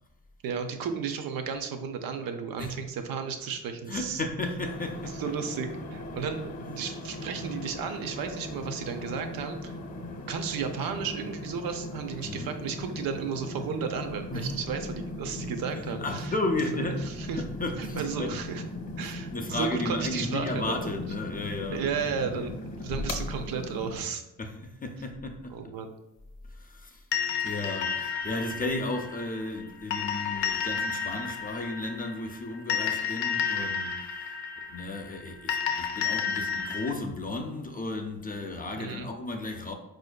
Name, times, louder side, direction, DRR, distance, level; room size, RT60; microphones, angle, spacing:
voice 1, 0.4-4.2 5.2-9.8 10.3-16.3 17.1-17.4 17.8-18.6 19.0-21.0 21.7-24.2 25.5-25.9 38.8-39.1, right 6 dB, 65° right, 0.5 m, -33 dB
voice 2, 3.9-5.4 12.2-12.5 14.3-14.6 15.4-18.4 19.0-21.8 22.3-22.5 23.0-23.1 24.4-25.8 26.5-27.0 27.4-39.7, left 2 dB, 25° left, 0.4 m, -34 dB
sound 1, 4.6-24.0, left 1 dB, 40° left, 0.8 m, -38 dB
sound 2, 27.1-36.9, left 7 dB, 90° left, 0.6 m, -32 dB
4.2 x 2.6 x 2.2 m
supercardioid pair, 60°, 39 cm